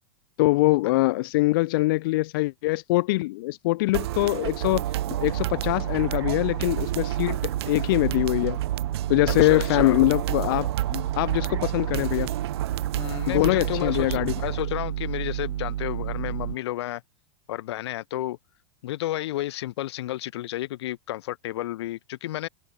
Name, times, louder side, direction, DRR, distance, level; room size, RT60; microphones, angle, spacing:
voice 1, 0.4-4.9 5.2-8.6 9.1-12.3 13.3-14.3, left 20 dB, 50° left, 1.4 m, -23 dB
sound 1, 3.9-14.6, right 16 dB, 60° right, 1.0 m, -31 dB
sound 2, 4.6-16.6, right 12 dB, 90° right, 3.0 m, -31 dB
voice 2, 9.4-10.0 12.9-17.0 17.5-18.4 18.8-22.5, left 15 dB, 65° left, 1.9 m, -31 dB
supercardioid pair, 170°, 15 cm